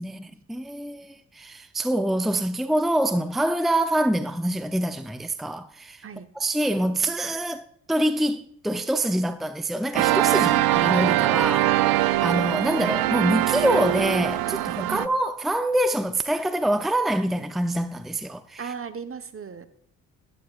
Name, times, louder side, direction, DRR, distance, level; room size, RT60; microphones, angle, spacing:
voice 1, 0.0-6.0 6.4-11.8 12.2-18.7, right 1 dB, ahead, 0.7 m, -25 dB
sound 1, 9.9-15.1, right 15 dB, 70° right, 0.6 m, -22 dB
voice 2, 18.6-19.7, right 6 dB, 35° right, 1.2 m, -36 dB
12.0 x 11.0 x 2.5 m
supercardioid pair, 55°, 37 cm